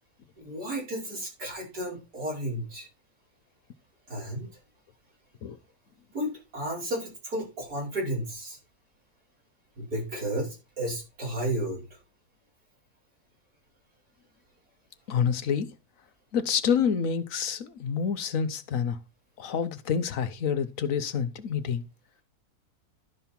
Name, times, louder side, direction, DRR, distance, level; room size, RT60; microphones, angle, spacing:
voice 1, 0.4-2.9 4.1-4.6 6.1-8.6 9.8-12.0, right 1 dB, 80° right, 5.5 m, -33 dB
voice 2, 15.1-15.7 16.3-19.0 19.4-21.8, left 7 dB, 65° left, 1.2 m, -28 dB
12.0 x 5.5 x 4.4 m
omnidirectional pair, 1.6 m